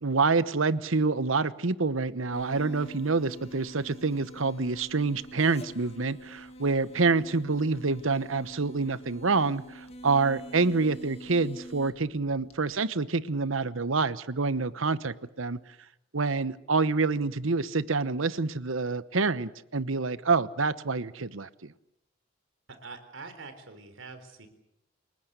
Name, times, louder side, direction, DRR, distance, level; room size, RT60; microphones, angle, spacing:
voice 1, 0.0-15.6 16.1-21.7, right 4 dB, 85° right, 16 dB, 1.0 m, -27 dB
sound 1, 2.3-12.8, equal, 30° left, 2.1 m, -46 dB
voice 2, 22.7-24.5, right 4 dB, 70° right, 9 dB, 4.1 m, -45 dB
29.0 x 19.5 x 8.3 m, 0.82 s
head